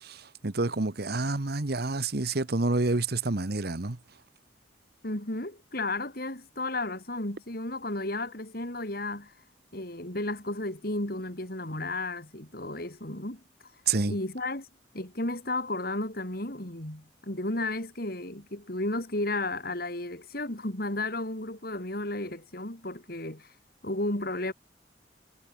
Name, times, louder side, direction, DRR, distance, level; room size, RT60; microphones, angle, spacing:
voice 1, 0.0-4.0 13.9-14.1, right 3 dB, 55° right, 1.2 m, -28 dB
voice 2, 5.0-9.3 9.7-13.4 14.1-14.7 14.9-23.5 23.8-24.5, left 2 dB, 55° left, 4.0 m, -33 dB
head